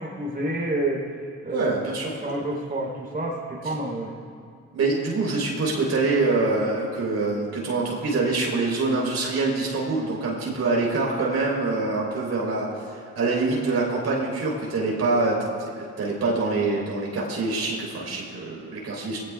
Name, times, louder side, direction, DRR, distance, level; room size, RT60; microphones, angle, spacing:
voice 1, 0.0-1.7 2.2-4.1, right 1 dB, 30° right, -4 dB, 4.2 m, -29 dB
voice 2, 1.5-2.2 4.7-19.2, right 3 dB, 60° right, -2 dB, 4.2 m, -25 dB
21.5 x 17.0 x 2.5 m, 2.4 s
cardioid pair, 90°, 30 cm